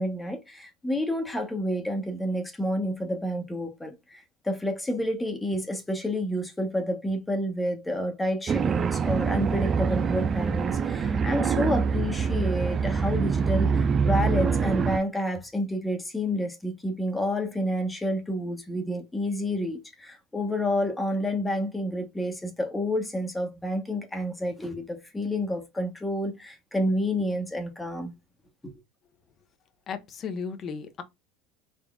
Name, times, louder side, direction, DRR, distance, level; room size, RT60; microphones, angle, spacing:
voice 1, 0.0-28.1, equal, 10° left, 1.1 m, -29 dB
sound 1, 8.5-15.0, right 6 dB, 30° right, 0.3 m, -25 dB
voice 2, 29.9-31.0, left 6 dB, 35° left, 0.9 m, -35 dB
3.7 x 3.7 x 2.3 m
supercardioid pair, 120°, 0 cm